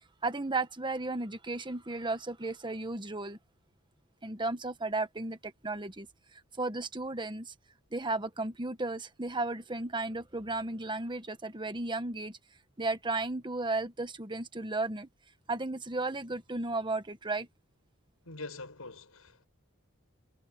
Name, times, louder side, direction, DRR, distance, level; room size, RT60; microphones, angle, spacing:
voice 1, 0.2-3.4 4.2-6.1 6.6-7.5 7.9-12.4 12.8-15.1 15.5-17.5, right 2 dB, 20° right, 1.4 m, -34 dB
voice 2, 18.2-19.5, left 3 dB, 75° left, 6.5 m, -44 dB
head